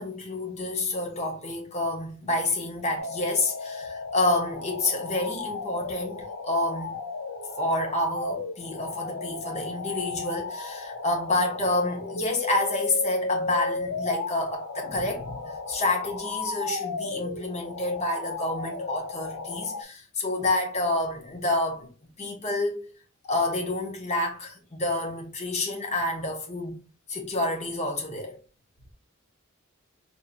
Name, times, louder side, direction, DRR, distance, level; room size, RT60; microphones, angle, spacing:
voice 1, 0.0-7.0 7.6-21.9 22.2-22.9 23.2-26.8 27.1-28.4, left 2 dB, 35° left, 1.0 m, -28 dB
sound 1, 3.0-19.8, left 3 dB, 75° left, 0.5 m, -35 dB
5.4 x 2.6 x 2.6 m
head